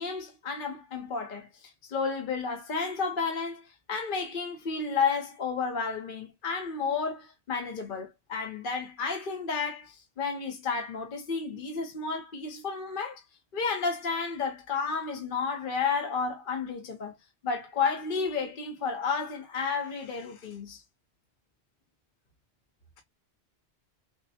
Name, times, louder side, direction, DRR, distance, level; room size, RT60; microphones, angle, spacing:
voice 1, 0.0-1.5 1.9-3.6 3.9-13.2 13.5-17.2 17.4-20.8, left 5 dB, 55° left, 0.8 m, -31 dB
6.1 x 2.0 x 2.7 m
omnidirectional pair, 1.1 m